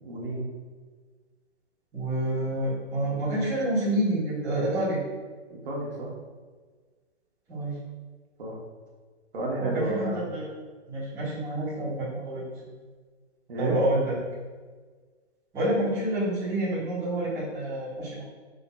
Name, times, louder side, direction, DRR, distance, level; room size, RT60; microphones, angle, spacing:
voice 1, 0.0-0.6 5.5-6.1 8.4-8.6 9.3-10.3 13.5-13.8, right 1 dB, 50° right, -2 dB, 1.3 m, -31 dB
voice 2, 1.9-5.0 7.5-7.8 9.6-10.5 10.9-12.8 13.6-14.2 15.5-18.2, right 1 dB, 10° right, -11 dB, 0.7 m, -28 dB
5.3 x 3.8 x 2.3 m, 1.5 s
hypercardioid pair, 155°, 35 cm